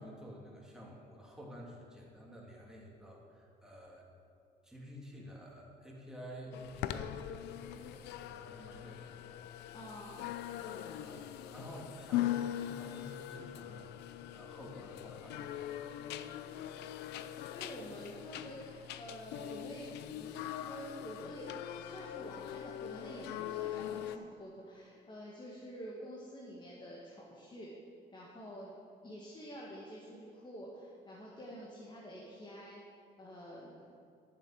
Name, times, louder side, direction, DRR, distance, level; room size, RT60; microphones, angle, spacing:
voice 1, 0.0-4.1 4.6-9.3 9.5-9.8 11.0-13.9 14.3-16.0, equal, 5° right, -3 dB, 2.5 m, -51 dB
sound 1, 6.5-24.2, left 12 dB, 80° left, 0.5 m, -41 dB
voice 2, 9.7-10.2 17.5-19.9 20.2-21.5 21.8-27.7 28.1-28.7 29.0-32.8 33.2-34.0, equal, 25° left, -4 dB, 1.9 m, -48 dB
11.0 x 7.4 x 6.4 m, 2.6 s
cardioid pair, 110°, 17 cm